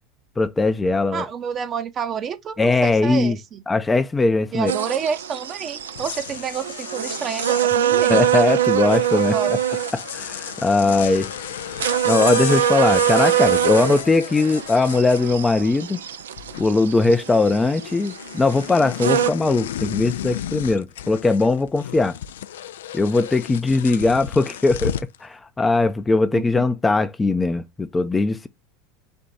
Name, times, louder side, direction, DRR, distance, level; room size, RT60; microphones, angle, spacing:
voice 1, 0.4-1.2 2.6-3.4 3.7-4.7 8.1-9.6 9.9-11.3 12.0-16.0 16.6-22.2 22.9-28.5, left 3 dB, 15° left, 0.5 m, -20 dB
voice 2, 1.1-3.6 4.5-8.3 9.1-9.6 10.8-11.1 26.3-26.7, right 7 dB, 35° right, 0.8 m, -29 dB
sound 1, 4.7-19.3, right 10 dB, 85° right, 0.4 m, -24 dB
sound 2, 5.8-15.8 16.1-16.8 17.1-25.2, left 10 dB, 80° left, 0.3 m, -34 dB
4.4 x 2.6 x 3.9 m
hypercardioid pair, 90°, 0 cm